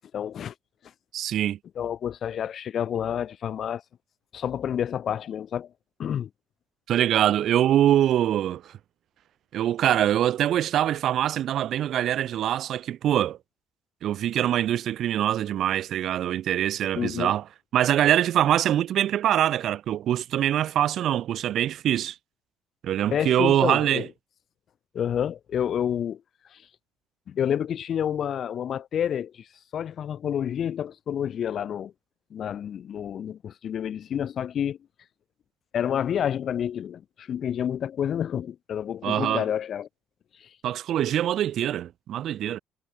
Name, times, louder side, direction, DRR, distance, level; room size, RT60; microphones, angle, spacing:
voice 1, 0.1-0.5 1.8-3.8 4.3-5.7 6.0-6.3 16.9-17.3 23.1-24.0 24.9-26.2 26.5-26.6 27.3-29.5 29.7-31.9 32.3-34.8 35.7-39.9 40.4-40.5, left 9 dB, 50° left, 1.3 m, -29 dB
voice 2, 1.1-1.6 6.9-8.7 9.5-13.4 14.0-17.4 17.7-22.2 22.8-24.1 39.0-39.4 40.6-42.6, right 11 dB, 60° right, 3.7 m, -24 dB
cardioid pair, 120°, 0 cm